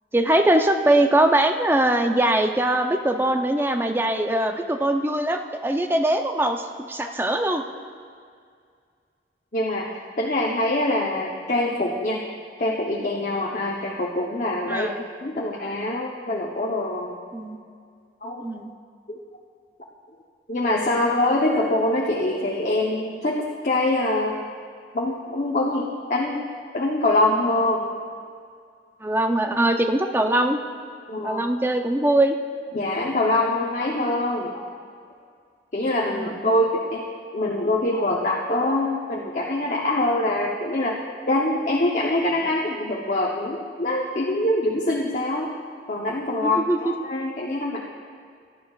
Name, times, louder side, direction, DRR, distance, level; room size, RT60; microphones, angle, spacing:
voice 1, 0.1-7.6 14.7-15.0 17.3-17.6 18.4-18.7 29.0-30.6 31.2-32.4 36.1-36.5 46.4-46.9, right 1 dB, 15° right, 5 dB, 0.5 m, -22 dB
voice 2, 9.5-9.9 10.2-12.2 12.6-14.9 15.2-17.2 18.2-18.5 19.1-19.2 20.5-24.3 24.9-26.4 26.7-28.0 31.1-31.4 32.7-34.7 35.7-37.1 37.3-41.0 41.3-45.5 45.9-47.8, left 1 dB, 45° left, -2 dB, 0.8 m, -24 dB
18.0 x 11.0 x 2.4 m, 2.2 s
head